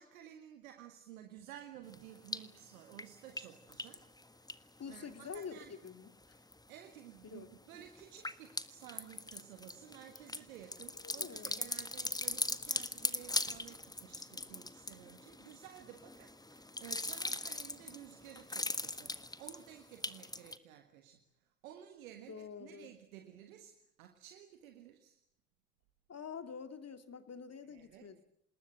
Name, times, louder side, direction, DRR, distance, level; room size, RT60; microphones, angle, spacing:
voice 1, 0.0-4.1 4.4-5.7 6.4-21.2 21.6-25.2 27.7-28.1, right 10 dB, 75° right, 6 dB, 1.7 m, -54 dB
sound 1, 1.9-2.6 2.9-5.9 6.2-6.8 7.2-20.6, left 2 dB, 10° left, 1.5 m, -40 dB
voice 2, 4.8-6.1 7.2-7.5 11.0-11.7 22.3-22.9 26.1-28.2, left 6 dB, 35° left, 9 dB, 2.5 m, -47 dB
26.5 x 21.0 x 8.7 m, 0.73 s
figure-of-eight pair, 45°, 41 cm